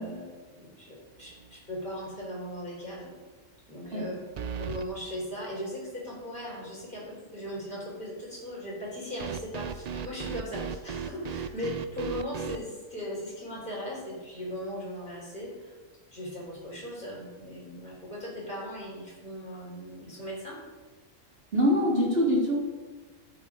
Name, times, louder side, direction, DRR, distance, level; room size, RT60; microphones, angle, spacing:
voice 1, 0.0-3.1 3.7-4.2 4.6-15.7 16.1-20.6, equal, 40° left, -4 dB, 4.1 m, -38 dB
sound 1, 1.3-1.7 2.1-2.2 4.4-4.9 9.2-12.6, right 7 dB, 75° right, 0.3 m, -36 dB
voice 2, 21.5-22.6, equal, 50° right, -3 dB, 2.5 m, -24 dB
16.0 x 7.7 x 3.7 m, 1.3 s
omnidirectional pair, 1.3 m